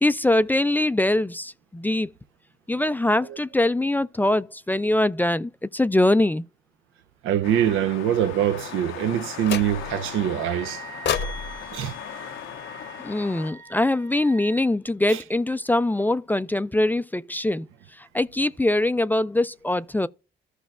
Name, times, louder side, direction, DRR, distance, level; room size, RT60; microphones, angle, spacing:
voice 1, 0.0-2.1 2.7-6.4 13.0-17.7 18.0-20.1, left 1 dB, 10° left, 0.3 m, -23 dB
voice 2, 7.2-10.8 11.7-12.0 15.1-15.2, right 10 dB, 90° right, 0.6 m, -24 dB
sound 1, 7.4-13.5, left 10 dB, 85° left, 0.7 m, -39 dB
sound 2, 9.4-10.1 11.0-13.3, left 7 dB, 65° left, 0.9 m, -32 dB
Wind instrument woodwind instrument, 9.7-14.7, right 5 dB, 40° right, 1.3 m, -44 dB
14.5 x 6.1 x 2.4 m
cardioid pair, 90°, 20 cm